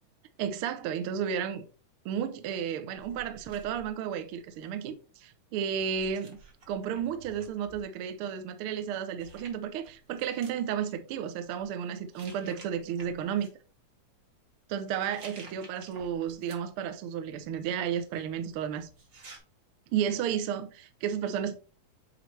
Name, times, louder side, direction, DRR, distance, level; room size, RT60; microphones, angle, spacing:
voice 1, 0.4-1.7 2.0-6.4 6.7-13.5 14.7-18.9 19.9-21.6, right 8 dB, 75° right, 1.2 m, -32 dB
sound 1, 3.0-4.8 5.8-7.8 8.9-9.0 9.2-10.6 11.4-11.7 12.1-13.5 14.9-16.8 17.2-19.4, right 2 dB, 45° right, 1.2 m, -53 dB
8.9 x 3.2 x 3.3 m
omnidirectional pair, 3.3 m